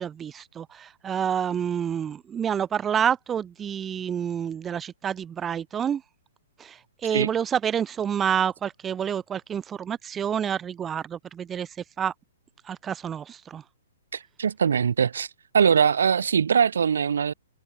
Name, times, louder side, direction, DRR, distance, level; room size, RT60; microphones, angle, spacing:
voice 1, 0.0-6.0 6.6-11.7 12.0-12.1 12.7-13.6, right 8 dB, 10° right, 1.3 m, -28 dB
voice 2, 14.1-15.3 15.5-17.3, right 7 dB, 85° right, 6.7 m, -22 dB
hypercardioid pair, 175°, 0 cm